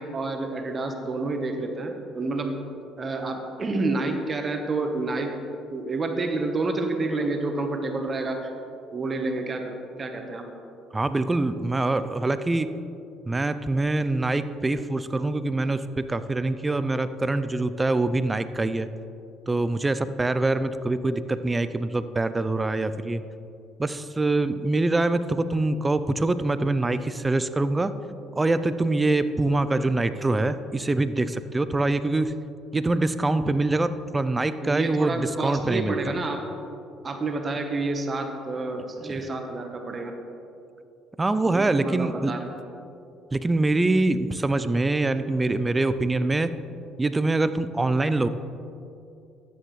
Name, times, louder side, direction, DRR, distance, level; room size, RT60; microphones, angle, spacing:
voice 1, 0.0-2.6 3.0-5.3 5.7-8.5 8.9-10.5 34.6-36.4 37.0-40.2 41.4-42.5, right 3 dB, 35° right, 4 dB, 1.2 m, -29 dB
voice 2, 10.9-12.8 13.3-18.9 19.5-23.2 23.8-27.9 28.4-32.3 32.7-36.0 39.0-39.2 41.2-42.3 43.3-46.6 47.0-48.3, right 2 dB, 20° right, 12 dB, 0.5 m, -24 dB
13.0 x 9.3 x 3.2 m, 2.6 s
supercardioid pair, 85°, 0 cm